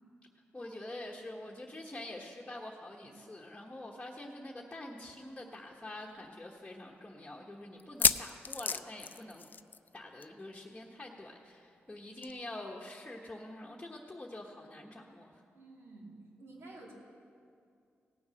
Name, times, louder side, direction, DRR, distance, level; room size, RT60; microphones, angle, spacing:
voice 1, 0.5-9.5 9.9-15.3, left 1 dB, 15° left, -2 dB, 1.2 m, -46 dB
sound 1, 5.1-5.2 5.5-5.6 6.2-6.3 7.8-9.9 10.2-10.4 10.7-10.8 12.2-12.3, left 5 dB, 45° left, 0.4 m, -31 dB
voice 2, 15.5-16.9, right 2 dB, 75° right, -3 dB, 2.9 m, -51 dB
17.5 x 7.1 x 6.3 m, 2.4 s
cardioid pair, 75°, 4 cm